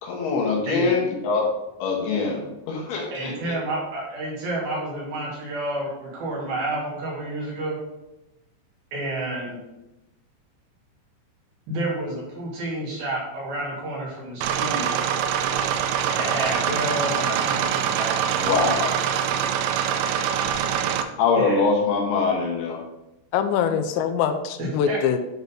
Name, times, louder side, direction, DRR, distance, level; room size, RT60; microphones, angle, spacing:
voice 1, 0.0-1.5 1.8-3.6 18.3-19.0 21.2-22.8, left 4 dB, 70° left, -1 dB, 3.1 m, -23 dB
voice 2, 3.1-7.8 8.9-9.6 11.7-15.1 16.1-18.7 21.4-21.6 24.6-25.0, right 1 dB, 60° right, -5 dB, 4.1 m, -30 dB
sound 1, 14.4-21.0, right 8 dB, 85° right, 2.9 m, -24 dB
voice 3, 23.3-25.2, left 8 dB, 85° left, 8 dB, 2.8 m, -23 dB
9.3 x 4.1 x 5.4 m, 0.94 s
omnidirectional pair, 5.1 m